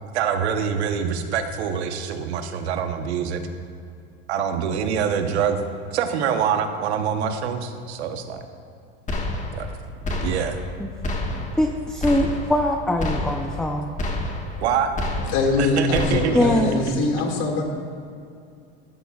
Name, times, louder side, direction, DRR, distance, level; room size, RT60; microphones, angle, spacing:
voice 1, 0.0-3.4 4.3-5.6 5.9-8.4 9.5-9.7 10.1-10.6 12.2-12.3 14.6-15.3 15.6-17.2, right 7 dB, 90° right, 7 dB, 1.1 m, -25 dB
sound 1, 9.1-9.8 10.0-10.7 11.0-11.7 12.0-12.7 13.0-13.7 14.0-14.7 15.0-15.7 15.9-16.6, left 1 dB, 25° left, 1.5 m, -28 dB
voice 2, 11.3-13.9 16.3-16.8, left 1 dB, ahead, 2 dB, 0.6 m, -22 dB
voice 3, 15.2-17.6, left 3 dB, 70° left, 1 dB, 2.2 m, -23 dB
13.5 x 13.0 x 2.4 m, 2.4 s
supercardioid pair, 105°, 32 cm